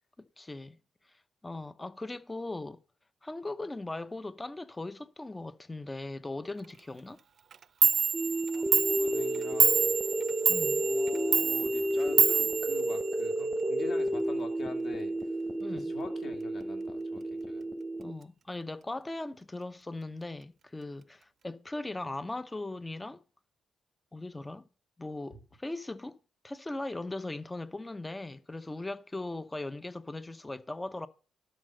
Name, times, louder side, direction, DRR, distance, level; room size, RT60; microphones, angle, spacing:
voice 1, 0.2-0.8 1.4-2.8 3.2-7.2 10.5-10.8 15.6-15.9 18.0-23.2 24.1-24.6 25.0-26.2 26.4-31.1, left 2 dB, 15° left, 0.7 m, -39 dB
Clock, 7.5-7.6 7.8-13.5, right 6 dB, 50° right, 0.4 m, -27 dB
sound 1, 8.1-18.1, right 1 dB, 20° right, 0.9 m, -31 dB
voice 2, 8.5-10.0 10.8-15.1 15.7-17.6 25.3-25.4, left 4 dB, 50° left, 2.9 m, -43 dB
11.5 x 5.1 x 6.6 m
cardioid pair, 90°, 0 cm